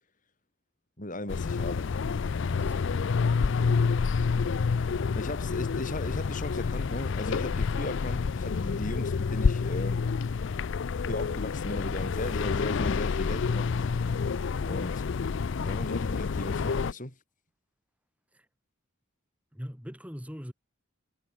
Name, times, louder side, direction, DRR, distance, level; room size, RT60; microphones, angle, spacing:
voice 1, 1.0-2.0 5.1-10.0 11.0-13.7 14.6-15.1 15.5-17.1, left 1 dB, 40° left, 5.4 m, -37 dB
sound 1, 1.3-16.9, left 5 dB, 60° left, 0.4 m, -28 dB
voice 2, 2.4-3.2 18.3-18.4 19.5-20.5, equal, 5° right, 5.1 m, -41 dB
head